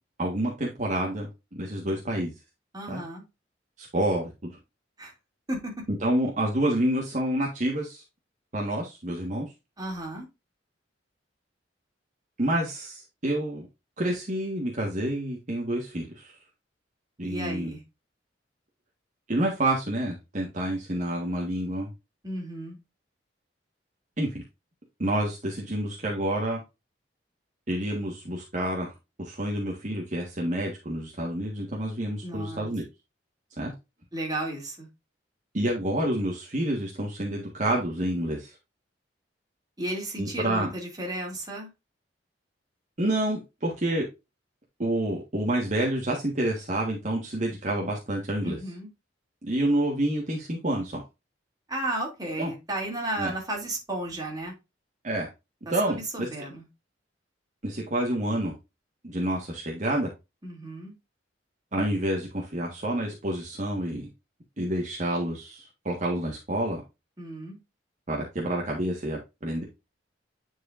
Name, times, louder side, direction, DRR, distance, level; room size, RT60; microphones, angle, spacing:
voice 1, 0.2-2.3 2.9-3.0 3.8-4.5 6.0-8.0 8.5-9.5 12.4-13.7 14.0-16.3 17.2-17.7 19.3-21.9 24.2-24.4 25.0-26.6 27.7-28.9 29.2-32.8 33.6-33.7 35.5-38.5 40.2-40.7 43.0-44.0 44.8-48.6 49.4-51.0 52.4-52.5 53.2-53.3 55.0-55.3 55.7-56.3 57.6-58.5 59.0-60.1 61.7-64.1 64.6-66.8 68.1-69.6, right 1 dB, 40° right, -1 dB, 1.5 m, -28 dB
voice 2, 2.7-3.2 5.0-5.1 5.5-5.9 9.8-10.3 17.2-17.8 22.2-22.8 32.2-32.7 34.1-34.9 39.8-41.7 48.4-48.9 51.7-54.5 55.7-56.7 60.4-60.9 67.2-67.6, right 1 dB, 20° right, 0 dB, 2.7 m, -33 dB
9.8 x 4.8 x 2.5 m, 0.24 s
head